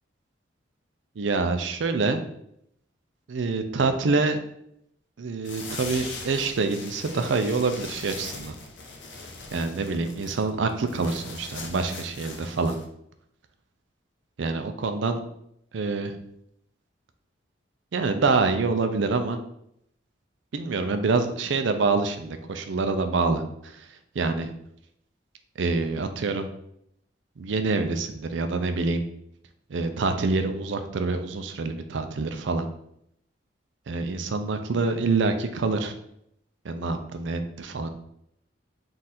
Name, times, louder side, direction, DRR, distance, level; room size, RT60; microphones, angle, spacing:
voice 1, 1.2-2.2 3.3-4.4 5.2-8.5 9.5-12.8 14.4-15.2 15.7-16.2 17.9-19.4 20.5-23.9 24.1-24.5 25.6-26.5 27.4-29.0 29.7-32.7 33.9-35.9 36.6-37.9, right 3 dB, 70° right, 8 dB, 0.4 m, -26 dB
sound 1, 5.4-12.8, left 3 dB, 70° left, 0.7 m, -40 dB
3.9 x 2.5 x 4.2 m, 0.74 s
head